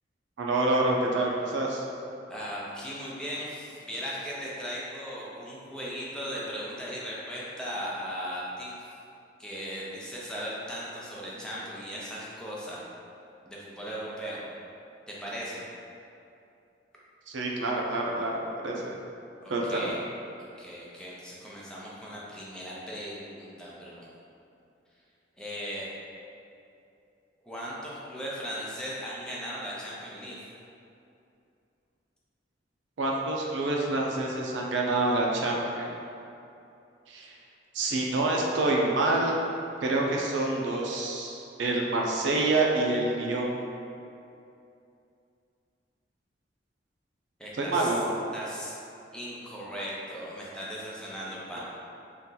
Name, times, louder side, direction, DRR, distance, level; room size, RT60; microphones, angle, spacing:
voice 1, 0.4-1.8 17.3-18.9 19.5-19.9 33.0-35.9 37.1-37.3 37.7-39.4 39.8-43.5 47.6-48.1 51.5-51.6, right 2 dB, 80° right, -1 dB, 0.5 m, -27 dB
voice 2, 2.3-8.7 9.4-12.8 13.5-14.4 15.2-15.6 19.4-20.0 20.4-24.1 25.4-25.9 27.4-30.4 47.4-47.9 48.3-48.7 49.1-51.6, equal, 5° left, -6 dB, 0.5 m, -37 dB
2.8 x 2.4 x 3.7 m, 2.6 s
head